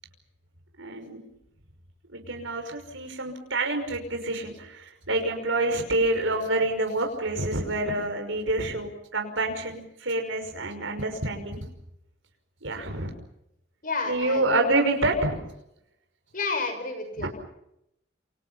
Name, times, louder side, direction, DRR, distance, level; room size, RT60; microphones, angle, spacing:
voice 1, 0.8-1.2 2.1-11.6 12.6-13.1 14.1-15.4 17.2-17.3, right 2 dB, 85° right, 4 dB, 5.7 m, -27 dB
voice 2, 13.8-14.6 16.3-17.3, left 3 dB, 45° left, 8 dB, 6.6 m, -30 dB
28.5 x 28.5 x 5.8 m, 0.81 s
head